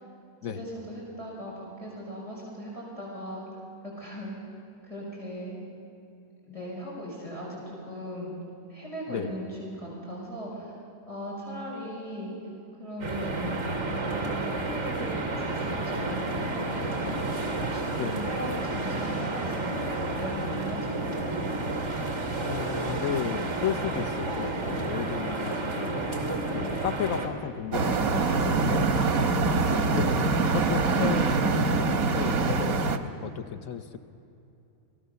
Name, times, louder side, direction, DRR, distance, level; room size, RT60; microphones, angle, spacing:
voice 1, 0.4-3.5 3.8-4.4 4.8-5.6 6.5-8.3 8.7-10.7 11.1-12.3 12.8-17.4 17.7-19.8 20.1-21.3, equal, 25° left, -6 dB, 6.0 m, -38 dB
sound 1, 13.0-27.3, right 2 dB, 55° right, 3.2 m, -31 dB
voice 2, 22.4-29.0 29.7-32.9 33.2-34.0, left 8 dB, 75° left, 10 dB, 1.2 m, -34 dB
sound 2, 27.7-33.0, right 3 dB, 85° right, 1.7 m, -24 dB
27.5 x 19.0 x 6.8 m, 2.7 s
omnidirectional pair, 1.5 m